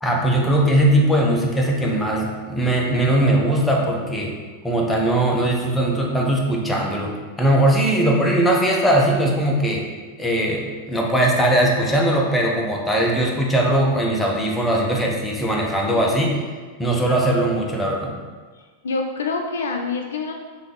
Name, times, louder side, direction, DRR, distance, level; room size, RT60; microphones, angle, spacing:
voice 1, 0.0-4.3 4.6-9.8 10.2-16.4 16.8-18.1, right 1 dB, 10° left, -2 dB, 0.7 m, -20 dB
voice 2, 8.0-8.3 18.5-20.3, left 4 dB, 65° left, 3 dB, 0.3 m, -27 dB
3.4 x 3.3 x 3.7 m, 1.4 s
figure-of-eight pair, 90°, 0 cm